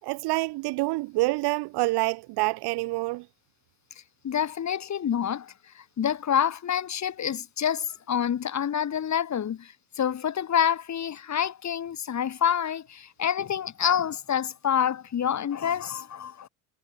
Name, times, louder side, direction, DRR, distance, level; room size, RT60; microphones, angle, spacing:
voice 1, 0.0-3.3, right 22 dB, 60° right, 5.8 m, -27 dB
voice 2, 4.2-16.5, left 9 dB, 40° left, 5.7 m, -27 dB
hypercardioid pair, 70°, 43 cm